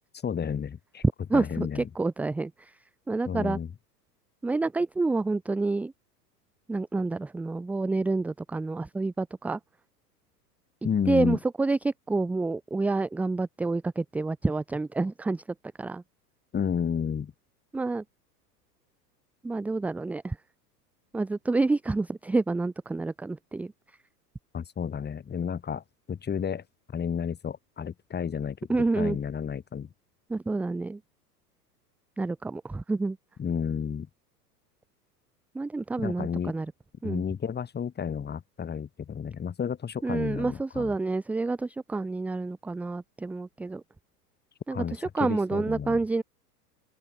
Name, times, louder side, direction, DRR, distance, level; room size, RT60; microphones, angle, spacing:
voice 1, 0.2-1.0 1.3-1.9 3.3-3.7 10.8-11.4 16.5-17.3 24.5-26.6 26.9-28.6 28.9-29.9 33.4-34.1 36.0-36.5 37.0-40.9 44.7-46.0, left 7 dB, 20° left, 6.6 m, -31 dB
voice 2, 1.3-2.7 3.1-3.6 4.4-5.9 6.7-9.6 11.1-15.4 15.8-16.0 17.7-18.0 19.4-20.4 21.1-23.7 28.7-29.2 30.3-31.0 32.2-33.2 35.5-36.7 37.0-37.2 40.0-43.8 44.7-46.2, right 3 dB, 5° right, 0.5 m, -28 dB
open air
figure-of-eight pair, 90°, 49 cm